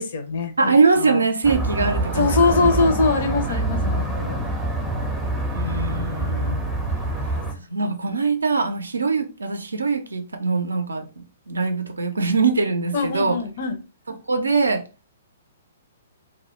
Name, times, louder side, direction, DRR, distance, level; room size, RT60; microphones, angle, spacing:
voice 1, 0.0-0.7 1.1-1.2 2.1-4.4 7.2-7.4 12.9-13.8, left 3 dB, 50° left, 0.5 m, -22 dB
voice 2, 0.6-2.7 3.5-3.6 5.5-6.6 7.7-13.4 14.3-14.8, right 4 dB, 70° right, 0.4 m, -22 dB
sound 1, 1.4-7.5, right 2 dB, ahead, 0.5 m, -25 dB
2.2 x 2.1 x 2.9 m
figure-of-eight pair, 115°, 0 cm